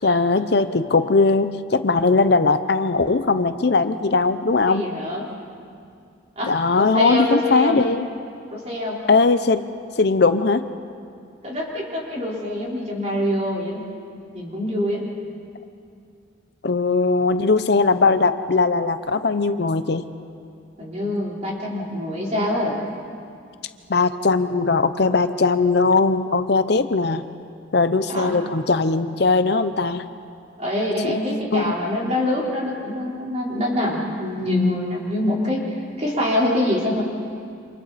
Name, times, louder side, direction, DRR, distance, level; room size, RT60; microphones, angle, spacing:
voice 1, 0.0-4.9 6.5-8.1 9.1-9.7 10.0-10.7 16.6-20.0 23.9-27.2 27.7-30.1 31.0-31.2 31.5-31.6, left 3 dB, 60° left, 11 dB, 0.7 m, -19 dB
voice 2, 4.7-5.3 6.4-7.8 8.5-9.0 11.4-13.8 14.3-15.0 20.8-22.8 28.1-28.4 30.6-35.7 36.0-37.0, left 1 dB, 35° right, -4 dB, 4.1 m, -25 dB
29.0 x 26.5 x 4.2 m, 2.4 s
head